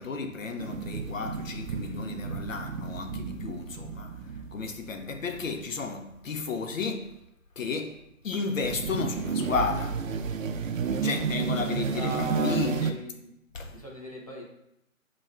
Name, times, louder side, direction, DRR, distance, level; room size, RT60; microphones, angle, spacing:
voice 1, 0.0-4.2 4.5-7.1 7.6-8.0 8.2-10.0 11.0-13.0 13.5-13.8, left 4 dB, 70° left, 0.7 m, -33 dB
sound 1, 0.6-5.6 8.6-12.9, right 5 dB, 70° right, 0.5 m, -32 dB
voice 2, 11.7-13.3 13.7-14.4, right 2 dB, 25° left, 0.5 m, -38 dB
5.8 x 2.3 x 2.3 m
figure-of-eight pair, 150°, 42 cm